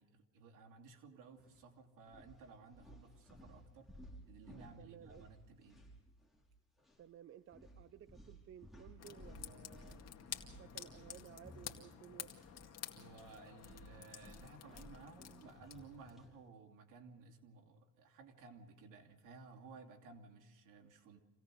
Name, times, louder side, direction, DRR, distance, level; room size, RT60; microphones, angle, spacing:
voice 1, 0.0-3.9 4.3-5.8 12.9-21.2, right 4 dB, 70° right, 3 dB, 2.8 m, -57 dB
sound 1, 1.4-1.6 2.0-6.5 6.8-7.0 7.5-12.6 12.9-16.4, equal, ahead, 5.2 m, -58 dB
voice 2, 4.5-5.3 7.0-10.0 10.6-12.3, right 10 dB, 40° right, 15 dB, 0.6 m, -57 dB
sound 2, 9.0-16.1, left 9 dB, 50° left, 2.1 m, -51 dB
27.0 x 17.0 x 6.4 m, 1.1 s
cardioid pair, 110°, 32 cm